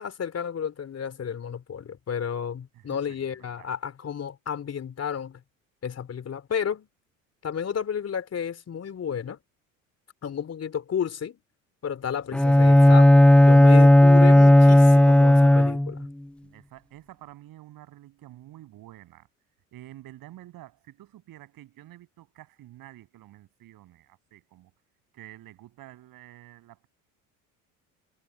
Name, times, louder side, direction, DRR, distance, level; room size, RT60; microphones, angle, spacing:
voice 1, 0.0-5.4 5.8-6.9 7.4-9.4 10.2-11.4 11.8-16.1, left 7 dB, 40° left, 3.7 m, -32 dB
voice 2, 2.7-3.7 16.4-19.3 19.7-24.7 25.1-26.9, right 15 dB, 60° right, 7.8 m, -49 dB
Bowed string instrument, 12.3-16.1, left 1 dB, 5° left, 0.7 m, -14 dB
hypercardioid pair, 70°, 40 cm